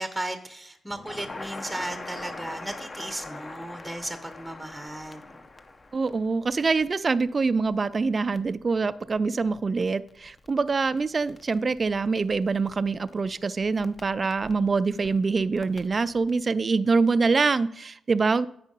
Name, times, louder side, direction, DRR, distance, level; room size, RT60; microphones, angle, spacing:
voice 1, 0.0-5.2, right 1 dB, 5° right, 9 dB, 0.7 m, -35 dB
Crackle, 0.9-16.4, left 2 dB, 30° left, 0.6 m, -44 dB
voice 2, 5.9-18.5, right 4 dB, 35° right, 14 dB, 0.3 m, -25 dB
9.1 x 4.5 x 5.3 m, 0.72 s
cardioid pair, 80°, 0 cm